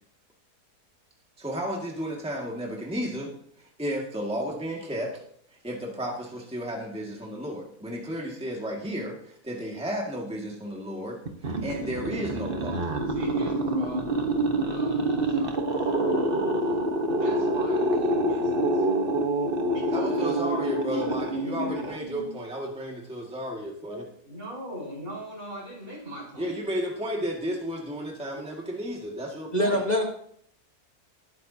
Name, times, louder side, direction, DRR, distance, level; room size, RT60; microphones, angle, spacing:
voice 1, 1.4-3.3 3.6-5.2 5.5-12.8 19.9-24.1 26.4-29.8, equal, 5° right, -1 dB, 1.9 m, -33 dB
sound 1, 11.3-22.4, right 1 dB, 35° right, 1.3 m, -27 dB
voice 2, 13.1-14.4 14.6-16.4 17.1-18.8 19.7-20.2 20.9-21.9 24.2-26.5, equal, 55° right, -4 dB, 5.2 m, -41 dB
voice 3, 29.5-30.0, equal, 30° left, 0 dB, 1.5 m, -23 dB
19.5 x 9.4 x 2.8 m, 0.64 s
omnidirectional pair, 1.7 m